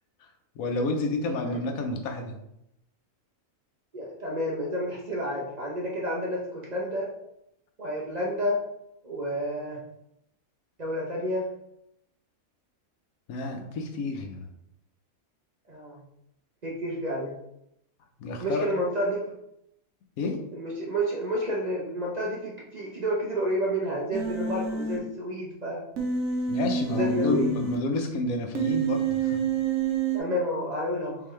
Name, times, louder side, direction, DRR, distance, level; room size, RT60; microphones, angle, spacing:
voice 1, 0.6-2.4 13.3-14.5 18.2-18.7 20.2-20.4 26.5-29.4, left 2 dB, 85° left, 4 dB, 1.1 m, -29 dB
voice 2, 3.9-7.1 7.8-8.6 9.0-9.8 10.8-11.5 15.7-16.0 16.6-17.3 18.4-19.4 20.5-25.9 26.9-27.5 30.1-31.2, equal, 35° right, -4 dB, 0.8 m, -30 dB
Human voice, 24.1-25.0 26.0-27.8 28.6-30.2, right 5 dB, 75° right, 1.2 m, -27 dB
3.9 x 3.7 x 3.1 m, 0.80 s
omnidirectional pair, 1.5 m